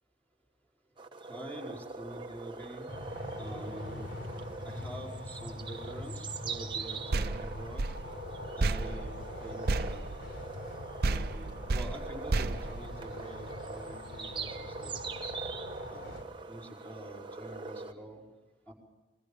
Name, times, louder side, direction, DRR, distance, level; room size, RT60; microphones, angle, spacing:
sound 1, 1.0-17.9, right 4 dB, 25° right, 1.1 m, -42 dB
voice 1, 1.2-2.8 3.4-4.1 4.6-7.8 8.6-9.1 9.4-10.0 11.0-15.2 15.9-16.2 16.5-18.2 18.7-18.8, right 1 dB, 10° left, -2 dB, 4.9 m, -45 dB
sound 2, 2.9-16.2, left 1 dB, 75° left, 3.8 m, -44 dB
sound 3, 7.1-10.7 11.0-13.5, right 3 dB, 55° right, 0.6 m, -33 dB
28.5 x 21.0 x 5.3 m, 1.2 s
head